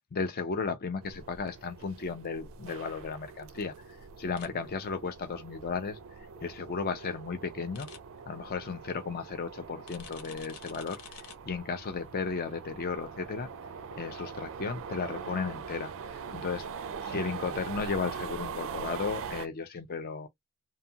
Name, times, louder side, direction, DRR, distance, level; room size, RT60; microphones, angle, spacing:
voice 1, 0.1-3.7 4.2-6.0 6.4-7.9 8.3-11.0 11.4-13.5 14.0-15.9 16.3-20.3, left 5 dB, 45° left, 0.4 m, -34 dB
sound 1, 1.0-19.5, right 6 dB, 60° right, 0.4 m, -42 dB
sound 2, 4.4-4.5 7.7-8.0 9.9-11.4, left 7 dB, 90° left, 0.7 m, -48 dB
2.6 x 2.3 x 2.7 m
head